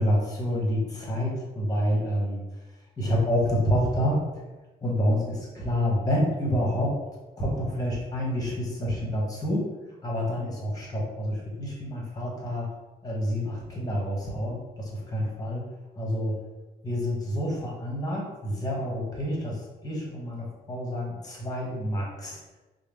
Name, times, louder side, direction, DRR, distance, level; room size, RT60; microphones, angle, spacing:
voice 1, 0.0-2.4 3.0-4.2 4.8-6.9 7.4-9.6 10.0-12.7 13.0-15.6 16.0-16.3 16.8-22.4, equal, 20° left, -2 dB, 1.2 m, -28 dB
4.7 x 2.1 x 3.4 m, 1.1 s
cardioid pair, 135°, 17 cm